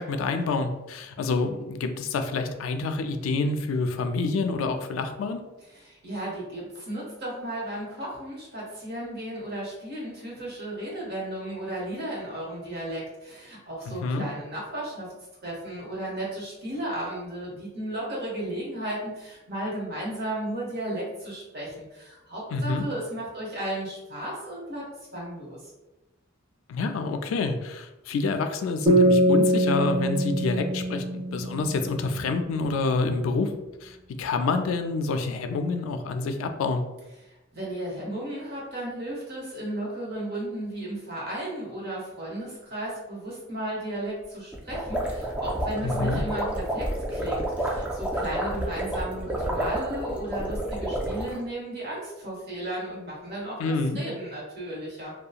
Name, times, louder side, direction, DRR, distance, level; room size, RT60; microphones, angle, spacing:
voice 1, 0.0-5.4 13.9-14.2 22.5-22.8 26.7-33.5 33.8-36.8 45.8-46.2 53.6-54.0, left 3 dB, 85° left, 7 dB, 0.3 m, -27 dB
voice 2, 5.7-15.1 15.4-24.9 25.1-25.6 37.3-55.1, right 1 dB, 55° right, -5 dB, 1.0 m, -34 dB
sound 1, 28.9-32.3, equal, 25° right, 0.7 m, -23 dB
sound 2, 44.5-51.4, right 1 dB, 5° right, 0.3 m, -30 dB
2.8 x 2.2 x 2.3 m, 1.0 s
head